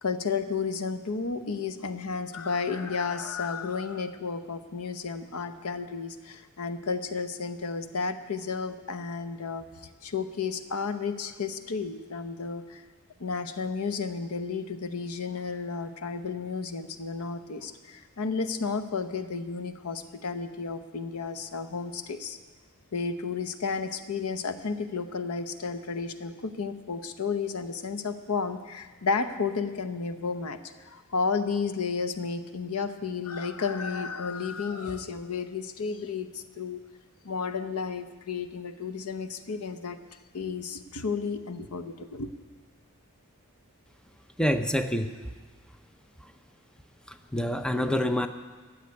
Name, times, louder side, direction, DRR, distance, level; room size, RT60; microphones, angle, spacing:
voice 1, 0.0-9.6 10.0-12.8 13.2-22.4 22.9-36.8 37.2-40.0 40.3-42.3, left 5 dB, 85° left, 10 dB, 0.8 m, -32 dB
voice 2, 44.4-45.1 47.1-48.3, equal, 5° left, 8 dB, 0.6 m, -27 dB
13.5 x 7.4 x 9.6 m, 1.4 s
head